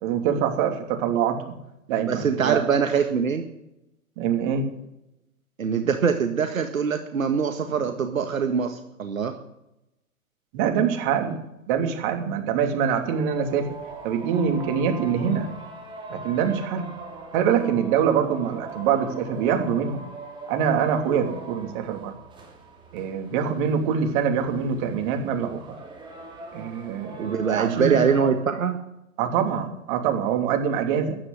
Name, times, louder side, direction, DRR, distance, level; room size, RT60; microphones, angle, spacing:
voice 1, 0.0-1.5 1.9-2.6 4.2-4.7 10.5-11.4 11.7-13.7 14.0-15.5 16.1-16.9 17.3-20.0 20.5-22.2 22.9-25.7 26.5-28.0 29.2-31.2, right 7 dB, 35° right, 5 dB, 3.1 m, -24 dB
voice 2, 2.1-3.5 5.6-9.4 27.2-28.8, right 6 dB, 70° right, 6 dB, 1.8 m, -23 dB
sound 1, 12.9-28.3, right 3 dB, 10° right, 3.6 m, -41 dB
14.5 x 10.0 x 9.8 m, 0.88 s
figure-of-eight pair, 120°, 42 cm